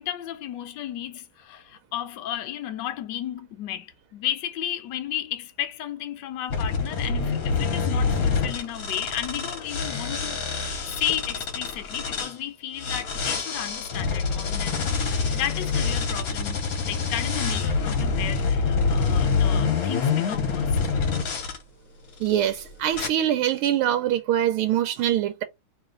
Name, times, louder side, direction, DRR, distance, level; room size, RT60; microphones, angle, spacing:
voice 1, 0.0-20.8, left 11 dB, 70° left, 1.1 m, -33 dB
sound 1, 6.5-12.3 12.8-21.6 22.2-22.5 22.9-23.1, left 5 dB, 55° left, 1.2 m, -26 dB
voice 2, 22.2-25.4, right 11 dB, 80° right, 1.5 m, -23 dB
3.2 x 2.9 x 3.7 m
omnidirectional pair, 2.4 m